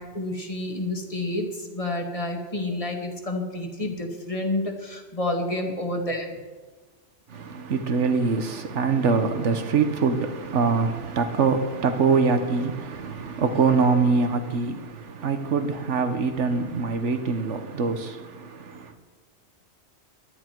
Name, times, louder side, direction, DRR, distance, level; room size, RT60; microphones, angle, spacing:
voice 1, 0.0-6.4, left 1 dB, 30° left, 2.2 m, -29 dB
voice 2, 7.3-18.9, right 4 dB, 90° right, 1.4 m, -24 dB
20.0 x 12.5 x 4.6 m
omnidirectional pair, 1.2 m